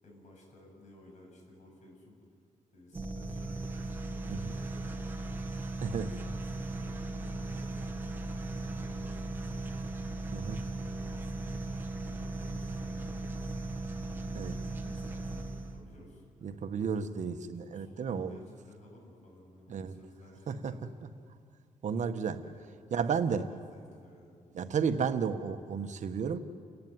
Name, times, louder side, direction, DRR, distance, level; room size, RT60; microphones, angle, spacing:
voice 1, 0.0-2.2 2.7-5.4 5.9-9.8 10.5-13.5 14.1-16.6 17.7-20.8 22.4-22.7 23.3-24.4, left 1 dB, 60° left, 0 dB, 8.0 m, -55 dB
sound 1, 2.9-15.9, right 2 dB, 15° right, 1.7 m, -37 dB
voice 2, 5.8-6.1 10.3-10.6 14.3-14.6 16.4-18.3 19.7-19.9 20.5-20.7 21.8-22.4 22.9-23.5 24.5-26.4, right 6 dB, 60° right, 9 dB, 1.3 m, -32 dB
29.5 x 15.0 x 9.6 m, 2.3 s
wide cardioid pair, 130°, 14 cm